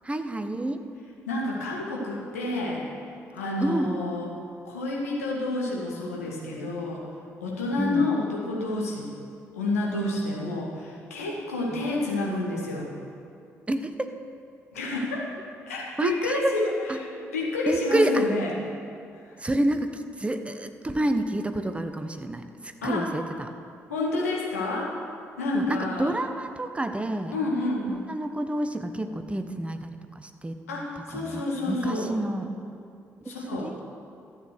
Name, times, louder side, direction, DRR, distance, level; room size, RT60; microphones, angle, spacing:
voice 1, 0.0-0.9 3.6-4.1 7.8-8.1 11.7-11.9 13.7-14.1 16.0-16.6 16.9-17.0 17.7-18.3 19.4-23.5 25.5-27.4 27.9-30.6 31.1-32.5 33.2-33.9, right 1 dB, 15° right, 8 dB, 0.9 m, -29 dB
voice 2, 1.3-2.8 3.3-4.3 4.6-7.0 7.4-9.1 9.5-12.9 14.7-15.3 15.7-16.7 17.2-18.5 22.8-23.1 23.9-24.9 25.4-26.1 27.3-28.0 30.7-32.1 33.3-33.7, left 2 dB, 80° left, -3 dB, 1.8 m, -29 dB
13.0 x 7.3 x 6.6 m, 2.5 s
figure-of-eight pair, 40°, 8 cm